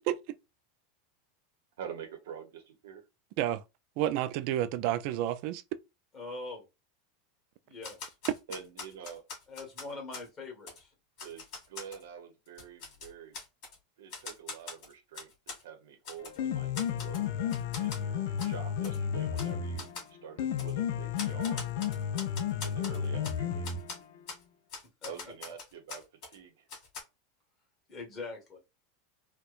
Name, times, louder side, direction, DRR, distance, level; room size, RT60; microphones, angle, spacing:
voice 1, 1.8-3.0 8.5-9.2 11.2-13.4 14.0-17.3 17.8-19.9 20.2-21.7 22.6-23.7 25.0-26.6, right 7 dB, 85° right, 1.0 m, -46 dB
voice 2, 4.0-5.6, right 12 dB, 50° right, 0.4 m, -30 dB
voice 3, 6.1-6.6 7.7-8.1 9.5-10.9 25.0-25.1 27.9-28.6, left 3 dB, 20° left, 1.5 m, -42 dB
Typewriter, 7.8-10.3 10.7-10.8 11.2-12.0 12.5-13.8 14.1-15.6 16.0-16.4 16.7-17.2 17.5-18.0 18.4-18.5 18.8-19.0 19.3-19.5 19.8-20.1 20.6-20.7 21.2-23.4 23.6-24.0 24.3-24.4 24.7-26.4 26.7-27.0, left 4 dB, 45° left, 2.2 m, -43 dB
Piano, 16.2-24.2, left 8 dB, 65° left, 0.5 m, -32 dB
4.4 x 2.2 x 2.5 m
supercardioid pair, 160°, 0 cm